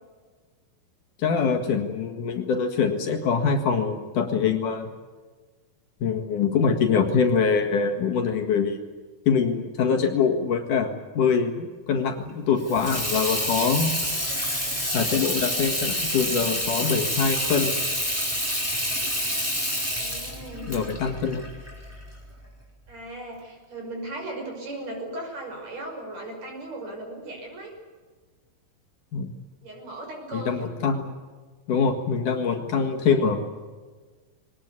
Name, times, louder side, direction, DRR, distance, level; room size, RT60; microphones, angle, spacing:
voice 1, 1.2-4.9 6.0-8.8 9.3-13.9 14.9-17.7 20.7-21.5 29.1-29.3 30.3-31.1 31.7-33.4, left 6 dB, 60° left, 4 dB, 3.2 m, -24 dB
Water tap faucet / Sink (filling or washing), 12.6-22.2, equal, 5° right, 4.4 m, -28 dB
voice 2, 19.9-20.8 22.9-27.7 29.6-30.7 32.7-33.4, right 2 dB, 45° right, 1 dB, 7.1 m, -37 dB
22.5 x 19.5 x 9.6 m, 1.4 s
omnidirectional pair, 4.2 m